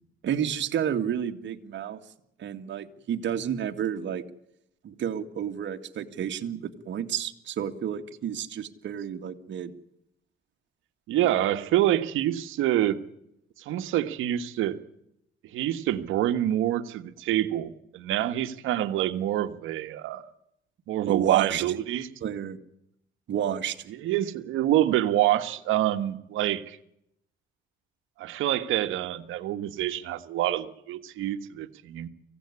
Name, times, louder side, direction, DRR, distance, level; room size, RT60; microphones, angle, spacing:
voice 1, 0.2-2.0 2.4-4.2 4.8-9.7 21.1-21.6 22.2-22.6 23.3-23.9, right 9 dB, 65° right, 6 dB, 2.1 m, -30 dB
voice 2, 11.1-13.0 13.6-14.8 15.4-20.2 20.9-22.1 24.0-26.8 28.2-32.1, right 13 dB, 90° right, 9 dB, 1.6 m, -26 dB
25.0 x 17.0 x 9.8 m, 0.78 s
cardioid pair, 90°, 20 cm